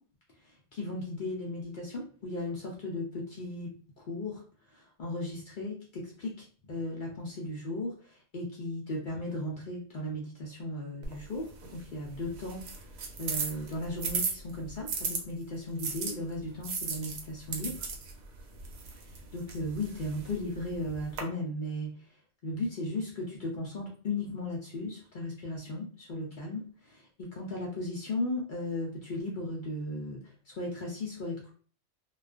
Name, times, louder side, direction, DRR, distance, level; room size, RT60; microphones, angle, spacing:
voice 1, 0.7-4.4 4.7-12.6 13.2-17.9 19.3-22.0 22.4-30.2 30.5-31.5, left 1 dB, 75° left, -3 dB, 0.4 m, -36 dB
sound 1, 11.0-15.2 15.8-21.2, right 5 dB, 80° right, 1.0 m, -37 dB
2.3 x 2.2 x 2.3 m, 0.42 s
omnidirectional pair, 1.5 m